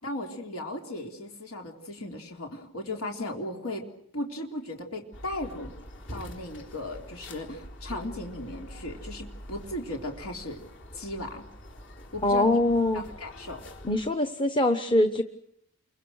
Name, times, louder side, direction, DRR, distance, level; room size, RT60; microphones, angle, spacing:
voice 1, 0.0-3.9 4.1-5.7 6.1-10.6 10.9-11.4 12.1-12.6 12.9-13.6, left 1 dB, 80° left, 2 dB, 3.4 m, -36 dB
sound 1, 5.1-14.1, equal, 55° left, 3.9 m, -45 dB
voice 2, 12.2-13.0 13.8-15.2, left 1 dB, 20° left, 6 dB, 1.0 m, -23 dB
29.0 x 23.5 x 6.4 m, 0.72 s
head